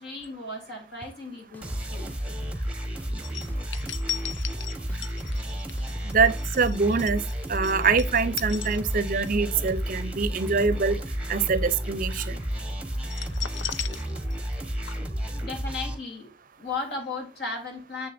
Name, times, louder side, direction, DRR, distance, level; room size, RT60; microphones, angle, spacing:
voice 1, 0.0-2.1 13.0-13.1 13.6-14.4 15.4-16.3 16.6-18.1, left 3 dB, 60° left, 3.5 m, -36 dB
sound 1, 1.0-1.1 1.5-2.5 3.0-4.1 4.4-6.8, equal, 10° left, 0.6 m, -46 dB
sound 2, 1.6-15.9, equal, 5° right, 1.0 m, -32 dB
sound 3, 3.2-9.3 9.7-9.9 13.0-14.6 14.9-15.0, left 9 dB, 85° left, 0.6 m, -37 dB
voice 2, 6.0-7.2 7.5-11.0 11.3-12.4, right 5 dB, 50° right, 0.6 m, -24 dB
7.3 x 6.6 x 2.6 m
head